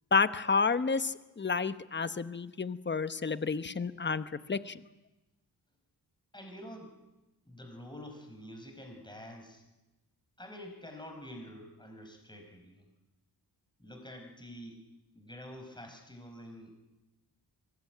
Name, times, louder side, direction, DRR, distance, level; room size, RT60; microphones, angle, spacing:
voice 1, 0.1-4.8, left 4 dB, 25° left, 13 dB, 0.9 m, -30 dB
voice 2, 6.3-6.9 7.4-9.6 10.4-12.8 13.8-14.8 15.1-16.7, equal, 10° left, 4 dB, 4.9 m, -47 dB
23.5 x 19.5 x 9.2 m, 1.0 s
wide cardioid pair, 115°, 41 cm